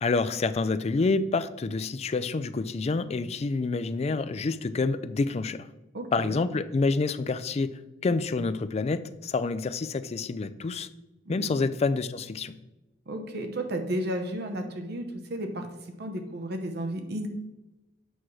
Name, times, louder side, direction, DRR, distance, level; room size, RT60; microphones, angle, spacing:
voice 1, 0.0-5.7 6.1-7.7 8.0-10.9 11.3-12.6, left 3 dB, 35° left, 13 dB, 0.4 m, -28 dB
voice 2, 5.9-6.4 11.3-11.6 13.1-15.7 16.0-17.3, right 1 dB, 60° right, 6 dB, 0.8 m, -33 dB
8.1 x 5.9 x 3.1 m, 1.0 s
head